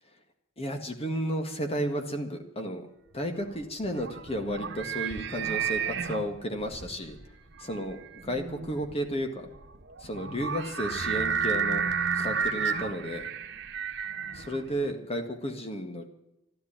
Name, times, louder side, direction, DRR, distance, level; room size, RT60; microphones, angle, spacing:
voice 1, 0.6-2.9 3.1-7.2 7.6-9.5 10.0-11.8 12.1-13.3 14.3-16.1, equal, 30° left, 6 dB, 1.8 m, -33 dB
sound 1, 3.4-14.9, right 6 dB, 60° right, 1.4 m, -32 dB
13.0 x 12.5 x 8.8 m, 0.88 s
head